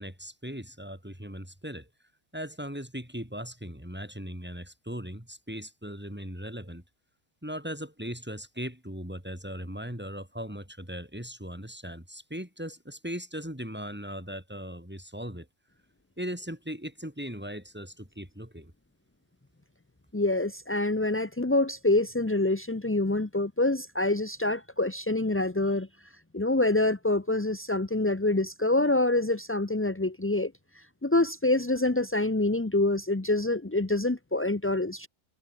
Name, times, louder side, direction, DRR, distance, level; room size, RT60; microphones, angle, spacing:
voice 1, 0.0-1.9 2.3-6.8 7.4-15.5 16.2-18.7, equal, 5° right, 4.5 m, -38 dB
voice 2, 20.1-25.9 26.3-35.1, left 2 dB, 15° left, 0.4 m, -26 dB
omnidirectional pair, 1.8 m